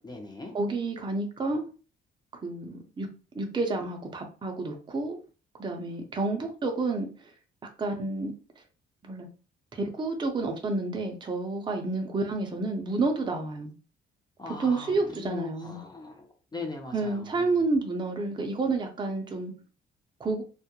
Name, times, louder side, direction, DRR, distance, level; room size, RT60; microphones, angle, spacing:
voice 1, 0.0-0.5 14.4-17.6, left 3 dB, 20° left, 0.6 m, -40 dB
voice 2, 0.5-1.6 2.4-3.1 3.3-5.2 5.6-7.3 7.8-8.3 9.0-9.3 9.8-13.7 14.5-15.8 16.9-19.5 20.2-20.4, right 3 dB, 25° right, 0.5 m, -30 dB
2.3 x 2.1 x 2.9 m
cardioid pair, 90°, 20 cm